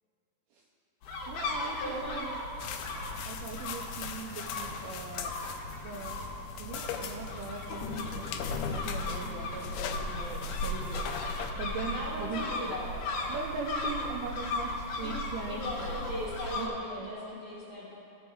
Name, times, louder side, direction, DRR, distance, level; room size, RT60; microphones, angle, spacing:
sound 1, 1.0-16.7, left 2 dB, 70° left, 1.8 m, -37 dB
voice 1, 1.3-2.4 3.3-5.3 5.8-6.2 6.6-11.1 11.6-12.4 13.3-16.0 16.6-17.1, right 5 dB, 80° right, -1 dB, 2.4 m, -40 dB
voice 2, 1.8-2.2 11.9-12.9 15.0-15.2 15.5-18.0, left 1 dB, 45° left, -9 dB, 0.9 m, -38 dB
sound 2, 2.6-11.5, left 7 dB, 90° left, 2.1 m, -39 dB
16.0 x 6.1 x 3.5 m, 2.7 s
omnidirectional pair, 4.9 m